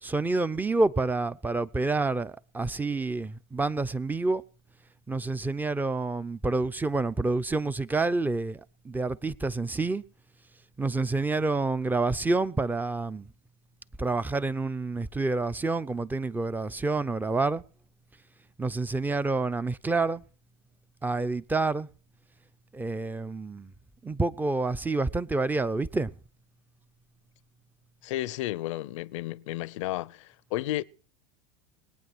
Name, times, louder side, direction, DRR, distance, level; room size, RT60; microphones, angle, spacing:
voice 1, 0.0-4.4 5.1-10.0 10.8-13.3 14.0-17.6 18.6-20.2 21.0-21.9 22.7-23.7 24.0-26.1, right 3 dB, 10° right, 0.7 m, -28 dB
voice 2, 28.0-30.8, left 15 dB, 75° left, 0.6 m, -32 dB
21.0 x 9.3 x 6.2 m
hypercardioid pair, 100°, 16 cm